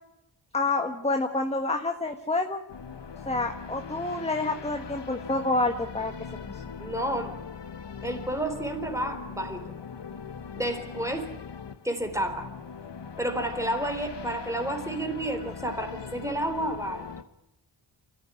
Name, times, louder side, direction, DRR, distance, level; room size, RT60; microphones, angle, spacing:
voice 1, 0.5-2.6 3.3-6.1 6.5-6.6, left 2 dB, 15° left, 6 dB, 1.4 m, -28 dB
sound 1, 2.7-17.2, left 6 dB, 60° left, 1.2 m, -41 dB
voice 2, 6.8-7.3 8.0-9.6 10.6-11.3 11.8-12.5 13.2-17.1, right 1 dB, 5° right, 6 dB, 3.9 m, -30 dB
27.5 x 14.5 x 9.8 m, 0.89 s
wide cardioid pair, 110°, 48 cm